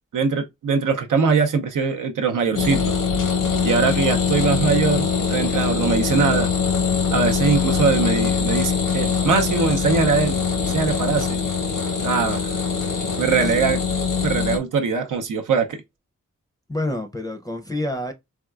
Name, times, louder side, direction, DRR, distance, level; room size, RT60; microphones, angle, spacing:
voice 1, 0.1-2.8 3.6-6.5 7.1-10.4 10.7-11.4 12.0-12.6 13.2-13.8 14.2-15.8, right 5 dB, 85° right, 0.6 m, -21 dB
sound 1, 2.5-14.6, left 6 dB, 90° left, 0.8 m, -22 dB
voice 2, 16.7-18.1, left 1 dB, 10° left, 0.5 m, -28 dB
3.5 x 2.3 x 2.3 m
cardioid pair, 65°, 31 cm